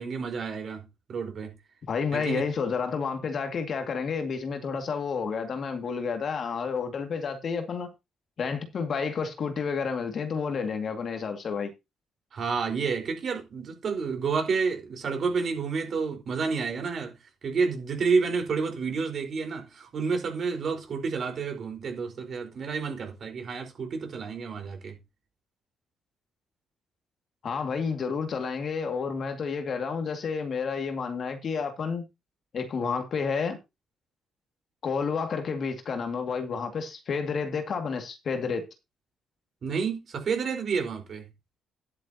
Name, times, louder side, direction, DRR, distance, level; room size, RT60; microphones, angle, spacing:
voice 1, 0.0-1.5 2.1-2.4 12.3-17.2 17.4-25.0 39.6-41.2, right 5 dB, 45° right, 4.5 m, -30 dB
voice 2, 1.9-7.9 8.4-11.7 27.4-32.1 32.5-33.6 34.8-38.7, left 5 dB, 45° left, 2.2 m, -30 dB
12.5 x 11.0 x 2.9 m
cardioid pair, 140°, 0 cm